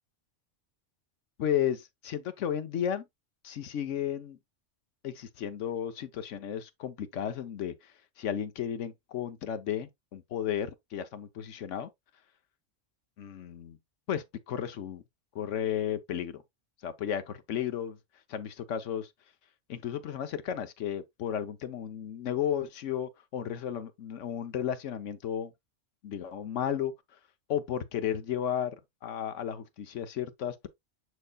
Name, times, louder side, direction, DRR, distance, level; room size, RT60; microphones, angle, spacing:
voice 1, 1.4-3.0 3.4-4.4 5.0-7.9 8.2-11.9 13.2-13.8 14.1-15.0 15.3-16.4 16.8-18.0 18.3-19.1 19.7-25.5 26.0-26.9 27.5-30.7, left 9 dB, 80° left, 1.1 m, -33 dB
6.6 x 6.4 x 2.3 m
omnidirectional pair, 1.3 m